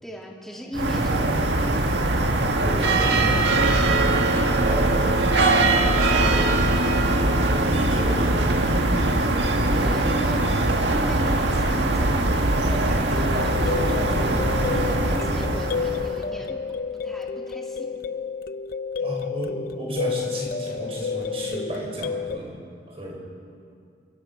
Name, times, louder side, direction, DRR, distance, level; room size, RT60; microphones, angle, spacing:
voice 1, 0.0-2.1 9.4-10.6 10.9-16.7 17.0-18.1, equal, ahead, -2 dB, 2.6 m, -36 dB
sound 1, 0.7-16.2, right 2 dB, 75° right, 1.8 m, -21 dB
voice 2, 2.4-3.7 4.1-8.9 19.0-22.6 22.9-23.2, right 1 dB, 30° right, -1 dB, 5.4 m, -34 dB
sound 2, 13.1-22.4, left 5 dB, 50° left, 0.6 m, -30 dB
28.0 x 23.5 x 5.6 m, 2.4 s
head